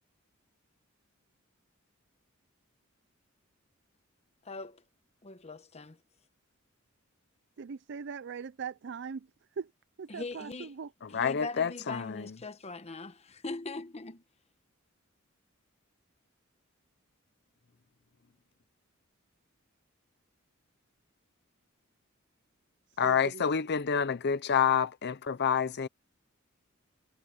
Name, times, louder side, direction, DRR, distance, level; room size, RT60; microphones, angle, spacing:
voice 1, 4.4-4.8 5.2-6.0 10.1-10.7 11.1-14.2, left 3 dB, 30° left, 1.0 m, -41 dB
voice 2, 7.6-9.3 9.6-9.7 10.0-10.9 23.0-23.4, right 6 dB, 60° right, 0.5 m, -40 dB
voice 3, 11.0-12.3 23.0-25.9, left 7 dB, 55° left, 0.6 m, -28 dB
head